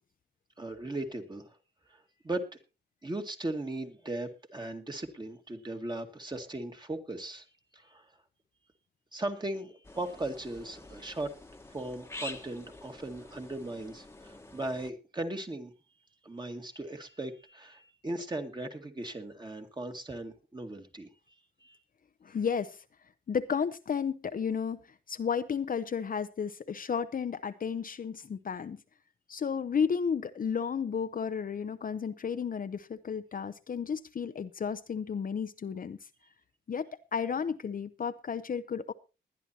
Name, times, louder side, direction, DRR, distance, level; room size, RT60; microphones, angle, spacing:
voice 1, 0.6-1.6 1.9-2.4 3.0-7.4 7.7-8.0 9.1-11.3 11.7-15.7 16.2-21.1 21.6-21.8, right 2 dB, 25° right, 5 dB, 2.0 m, -38 dB
sound 1, 9.8-14.9, left 2 dB, 15° left, 1.3 m, -47 dB
voice 2, 22.2-22.8 23.3-24.8 25.1-28.8 29.3-36.0 36.7-38.9, left 6 dB, 45° left, 11 dB, 0.7 m, -33 dB
20.5 x 10.5 x 2.8 m, 0.29 s
cardioid pair, 85°, 20 cm